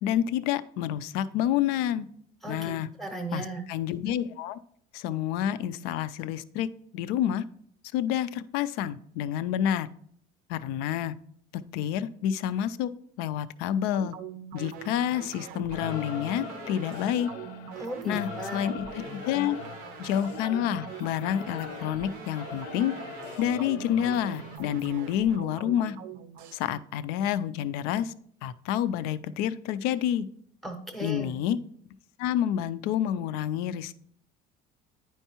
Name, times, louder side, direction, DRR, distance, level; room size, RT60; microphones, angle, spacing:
voice 1, 0.0-2.1 2.5-2.9 3.3-4.6 4.9-6.7 6.9-7.4 7.9-9.9 10.5-11.1 11.7-12.9 13.2-14.2 14.5-17.3 18.1-19.6 20.0-22.9 23.4-26.0 26.5-28.1 28.4-30.3 31.0-31.6 32.2-33.9, left 10 dB, 65° left, 15 dB, 0.4 m, -28 dB
voice 2, 3.0-3.6 17.8-18.7 30.6-31.3, right 2 dB, ahead, 4 dB, 0.7 m, -36 dB
sound 1, 13.9-26.6, right 9 dB, 55° right, 0.5 m, -43 dB
Singing / Musical instrument, 15.7-24.6, left 4 dB, 80° left, 0.8 m, -41 dB
9.9 x 4.5 x 2.9 m, 0.64 s
cardioid pair, 170°, 17 cm